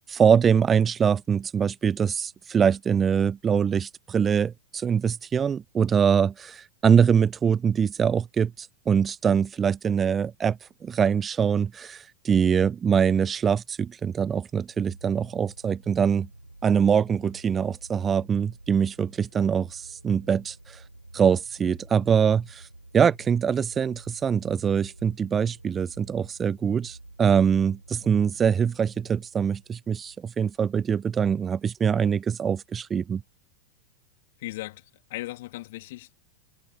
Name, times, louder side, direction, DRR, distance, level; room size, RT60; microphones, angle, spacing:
voice 1, 0.1-16.3 16.6-20.8 21.1-22.7 22.9-33.2, right 7 dB, 20° right, 0.4 m, -23 dB
sound 1, 14.7-30.3 31.1-31.2, right 2 dB, 85° right, 6.0 m, -50 dB
voice 2, 34.4-36.1, left 18 dB, 50° left, 2.3 m, -37 dB
figure-of-eight pair, 90°, 0 cm